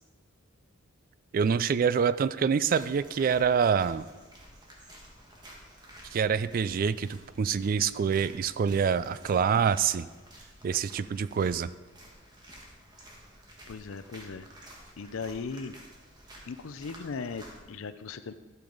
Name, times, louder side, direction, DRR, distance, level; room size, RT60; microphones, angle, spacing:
voice 1, 1.3-4.0 6.1-10.1 10.6-11.7, right 6 dB, 45° right, 16 dB, 0.3 m, -26 dB
sound 1, 2.7-17.6, equal, 20° right, 1.5 m, -52 dB
voice 2, 13.7-14.5 15.0-15.7 16.5-18.3, left 4 dB, 80° left, 12 dB, 0.5 m, -38 dB
12.0 x 6.9 x 3.9 m, 1.3 s
head